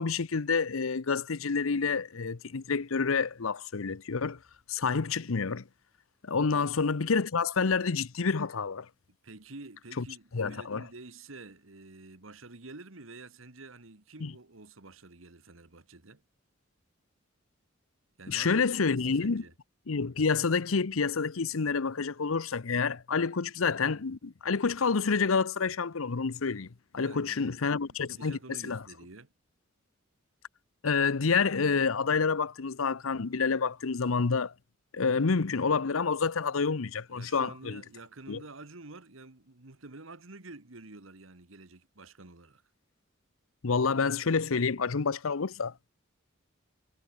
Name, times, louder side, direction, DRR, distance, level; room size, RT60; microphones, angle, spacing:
voice 1, 0.0-4.4 4.7-5.6 6.2-8.9 10.0-10.1 10.3-10.8 14.2-14.3 18.3-19.4 19.9-28.4 28.6-28.8 30.8-34.5 34.9-37.8 38.3-38.4 43.6-45.7, left 5 dB, 85° left, 0.8 m, -28 dB
voice 2, 9.2-16.2 18.2-19.5 27.0-27.5 27.9-29.3 37.1-42.6, right 2 dB, 70° right, 1.8 m, -49 dB
head